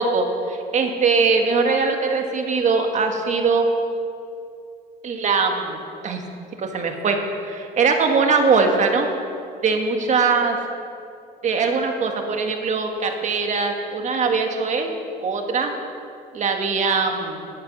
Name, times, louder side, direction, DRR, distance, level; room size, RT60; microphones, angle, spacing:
voice 1, 0.0-3.7 5.0-6.2 6.6-9.1 9.6-10.6 11.4-14.9 15.2-15.7 16.3-17.5, right 4 dB, 45° right, 4 dB, 1.7 m, -21 dB
13.0 x 8.9 x 6.3 m, 2.5 s
cardioid pair, 110°, 17 cm